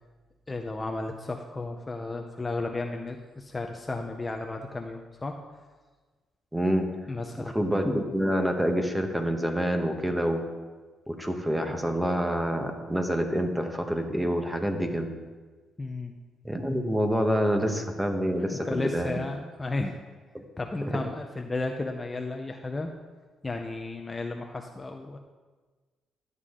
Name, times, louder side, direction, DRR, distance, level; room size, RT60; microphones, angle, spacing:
voice 1, 0.5-5.3 7.1-7.5 15.8-16.1 18.4-20.0 20.6-22.9 23.4-25.2, left 2 dB, 20° left, 3 dB, 0.7 m, -33 dB
voice 2, 6.5-6.9 7.4-10.5 11.1-15.1 16.4-19.2 20.3-20.4 20.8-21.0, equal, 10° right, 5 dB, 1.2 m, -27 dB
11.5 x 8.1 x 3.7 m, 1.3 s
cardioid pair, 90°, 0 cm